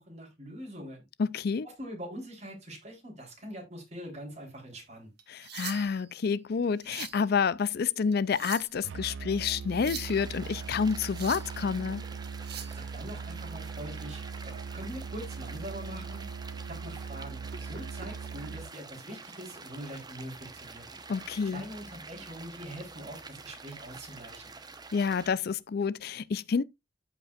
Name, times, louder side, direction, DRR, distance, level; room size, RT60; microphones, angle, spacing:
voice 1, 0.0-1.0 1.6-5.1 12.7-16.3 16.7-20.8 21.4-24.5, equal, 40° right, 3.7 m, -43 dB
voice 2, 1.2-1.7 5.3-12.0 21.1-21.6 24.9-26.6, left 5 dB, 60° left, 0.4 m, -29 dB
sound 1, 5.2-6.1 6.6-7.2 8.1-8.8 9.6-10.2 10.9-11.6 12.2-12.8 14.8-15.0 15.5-15.7 16.2-16.3 17.5-18.1 19.2-19.4, right 9 dB, 65° right, 1.5 m, -43 dB
Musical instrument, 8.8-18.8, right 5 dB, 90° right, 0.4 m, -40 dB
sound 2, 10.0-25.3, right 4 dB, 25° right, 0.9 m, -47 dB
13.5 x 5.3 x 2.4 m
head